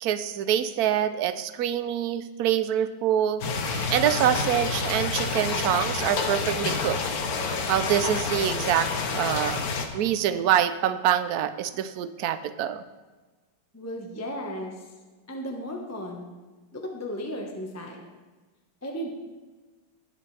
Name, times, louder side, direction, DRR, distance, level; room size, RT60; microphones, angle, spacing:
voice 1, 0.0-7.0 7.4-9.7 9.9-12.8, right 10 dB, 65° right, 11 dB, 1.0 m, -25 dB
sound 1, 3.4-9.9, left 4 dB, 55° left, 1.3 m, -28 dB
voice 2, 13.7-14.9 15.3-16.3 16.7-18.0 18.8-19.1, equal, 10° left, 0 dB, 1.1 m, -35 dB
20.0 x 7.6 x 3.4 m, 1.3 s
omnidirectional pair, 2.2 m